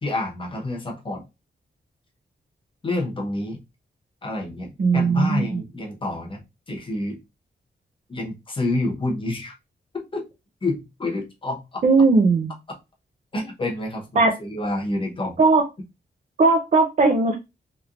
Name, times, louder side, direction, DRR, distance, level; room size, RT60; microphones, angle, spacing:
voice 1, 0.0-1.2 2.8-3.6 4.2-6.4 6.7-7.2 8.1-9.5 9.9-10.2 10.6-11.8 13.3-15.4, left 2 dB, 25° left, 1 dB, 0.9 m, -28 dB
voice 2, 4.8-5.6 11.8-12.5 14.2-14.4 15.4-15.6 16.4-17.3, right 3 dB, 40° right, 2 dB, 0.5 m, -18 dB
3.1 x 3.0 x 2.5 m, 0.24 s
wide cardioid pair, 175°, 19 cm